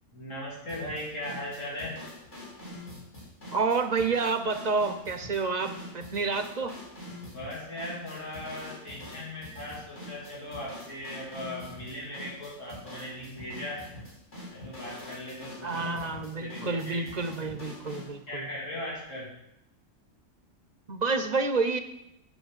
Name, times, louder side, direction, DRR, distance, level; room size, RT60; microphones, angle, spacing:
voice 1, 0.1-2.0 7.2-13.9 14.5-17.1 18.3-19.3, left 1 dB, 85° left, -5 dB, 3.4 m, -38 dB
sound 1, 0.7-18.1, left 1 dB, 70° left, 4.0 m, -45 dB
voice 2, 3.5-6.8 15.6-18.5 20.9-21.8, right 4 dB, 40° right, 8 dB, 0.8 m, -29 dB
9.2 x 6.7 x 7.2 m, 0.84 s
omnidirectional pair, 1.3 m